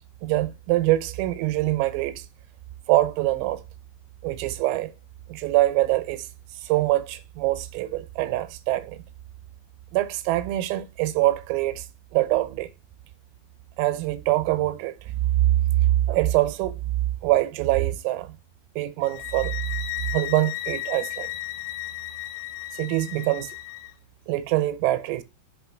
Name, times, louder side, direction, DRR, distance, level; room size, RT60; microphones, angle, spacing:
voice 1, 0.2-2.3 2.9-3.6 4.2-4.9 5.3-6.3 6.6-9.0 9.9-11.9 12.1-12.7 13.8-16.8 17.2-18.3 18.8-19.5 20.1-21.3 22.7-23.6 24.3-25.2, right 16 dB, 90° right, 3.5 m, -24 dB
sound 1, 19.0-23.9, left 17 dB, 85° left, 2.7 m, -34 dB
8.4 x 5.5 x 4.5 m
omnidirectional pair, 5.8 m